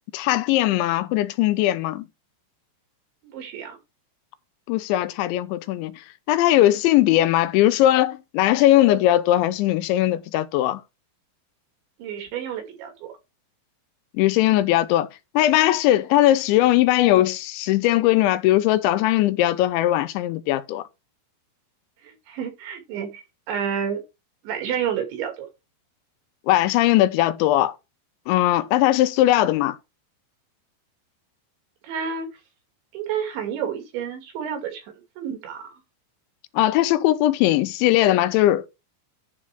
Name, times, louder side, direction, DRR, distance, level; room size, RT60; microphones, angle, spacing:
voice 1, 0.1-2.1 4.7-10.8 14.1-15.1 15.3-20.9 26.5-27.8 28.3-29.8 36.5-38.7, left 14 dB, 90° left, 3.1 m, -19 dB
voice 2, 3.2-3.8 12.0-13.1 22.0-24.0 24.4-25.5 31.8-32.3 32.9-35.8, right 8 dB, 80° right, 4.8 m, -30 dB
11.0 x 4.0 x 6.0 m
omnidirectional pair, 5.1 m